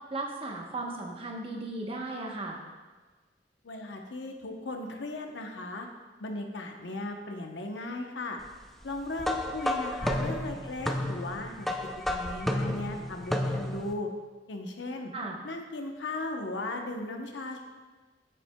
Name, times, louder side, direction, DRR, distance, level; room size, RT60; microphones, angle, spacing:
voice 1, 0.1-2.6 15.1-15.4, right 2 dB, 30° right, 0 dB, 1.0 m, -36 dB
voice 2, 3.6-5.9 6.2-8.4 8.8-11.7 12.1-14.1 14.5-15.1 15.4-17.6, left 2 dB, 80° left, 3 dB, 0.8 m, -37 dB
sound 1, 9.2-13.9, left 1 dB, ahead, 0.4 m, -31 dB
8.8 x 7.4 x 2.2 m, 1.3 s
head